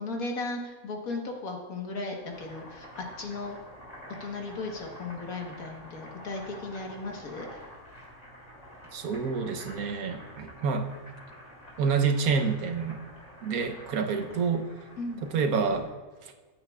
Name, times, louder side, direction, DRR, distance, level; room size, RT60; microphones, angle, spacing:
voice 1, 0.0-3.6 4.2-7.6 15.0-15.2, left 3 dB, 75° left, 1 dB, 1.8 m, -36 dB
Boiling, 2.1-15.9, equal, 25° left, 2.9 m, -48 dB
voice 2, 8.9-10.9 11.8-13.0 13.4-14.7 15.2-15.9 16.2-16.3, right 5 dB, 85° right, 5 dB, 1.3 m, -28 dB
15.0 x 8.4 x 2.3 m, 1.3 s
omnidirectional pair, 1.5 m